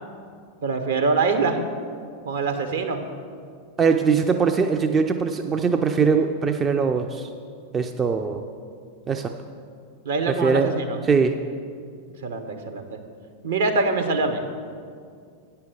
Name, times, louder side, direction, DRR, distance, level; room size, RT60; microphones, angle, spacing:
voice 1, 0.6-1.6 2.3-3.0 10.0-11.0 12.2-13.0 13.4-14.4, right 3 dB, 60° right, 5 dB, 0.9 m, -24 dB
voice 2, 3.8-7.3 7.7-8.4 9.1-9.3 10.3-10.7 11.1-11.4, right 5 dB, 20° right, 6 dB, 0.4 m, -21 dB
9.3 x 5.7 x 6.7 m, 2.2 s
figure-of-eight pair, 90°, 0 cm